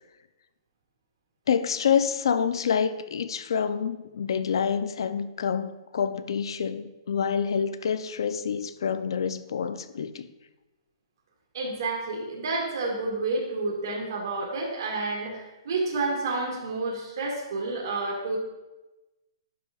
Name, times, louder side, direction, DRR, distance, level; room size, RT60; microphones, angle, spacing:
voice 1, 1.5-10.3, left 7 dB, 60° left, 0.4 m, -27 dB
voice 2, 11.5-18.4, right 3 dB, 50° right, 1.8 m, -30 dB
11.0 x 5.9 x 2.3 m
hypercardioid pair, 175°, 3 cm